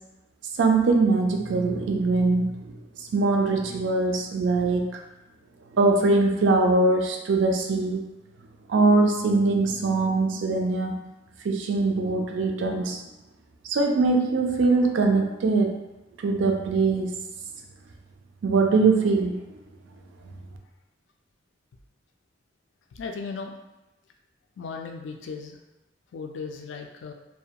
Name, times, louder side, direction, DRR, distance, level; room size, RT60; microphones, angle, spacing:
voice 1, 0.6-2.7 3.1-4.9 5.7-8.0 8.7-11.0 11.4-13.0 13.7-15.7 16.2-17.1 18.4-19.4, right 3 dB, 85° right, 3 dB, 0.4 m, -22 dB
voice 2, 22.9-23.5 24.6-25.6 26.1-27.1, left 5 dB, 80° left, 3 dB, 0.3 m, -36 dB
2.3 x 2.2 x 2.8 m, 1.0 s
head